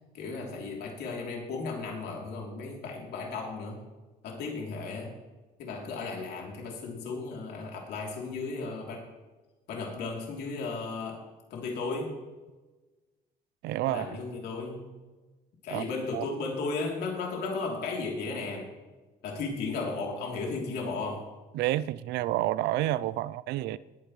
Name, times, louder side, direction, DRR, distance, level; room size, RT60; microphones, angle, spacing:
voice 1, 0.1-3.8 4.2-5.1 5.6-9.1 9.7-12.2 13.9-14.8 15.6-18.7 19.2-21.3, left 3 dB, 75° left, 3.4 m, -35 dB
voice 2, 13.6-14.1 15.7-15.8 16.1-16.3 21.5-23.8, right 14 dB, 85° right, 0.5 m, -29 dB
20.5 x 10.0 x 3.3 m
cardioid pair, 110°, 17 cm